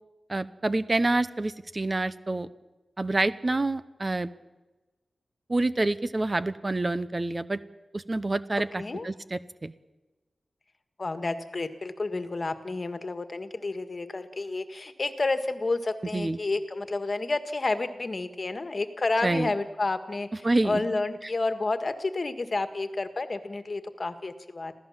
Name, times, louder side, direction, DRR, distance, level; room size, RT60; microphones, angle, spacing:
voice 1, 0.3-2.5 3.0-4.3 5.5-7.6 7.9-9.7 16.1-16.4 19.2-19.5 20.4-20.8, right 2 dB, 30° right, 13 dB, 0.8 m, -27 dB
voice 2, 8.8-9.1 11.0-24.7, left 3 dB, 45° left, 9 dB, 1.7 m, -30 dB
27.0 x 16.0 x 7.3 m, 1.1 s
wide cardioid pair, 90°, 0 cm